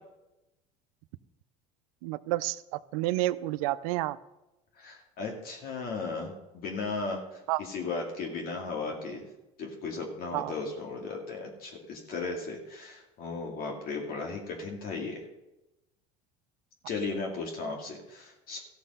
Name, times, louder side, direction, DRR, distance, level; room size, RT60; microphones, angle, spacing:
voice 1, 2.0-4.2 7.5-7.6 10.3-10.5, right 17 dB, 80° right, 17 dB, 0.5 m, -30 dB
voice 2, 4.8-9.2 9.6-15.2 16.9-18.6, left 3 dB, 55° left, 1 dB, 2.3 m, -36 dB
14.5 x 6.5 x 5.5 m, 0.98 s
supercardioid pair, 90°, 18 cm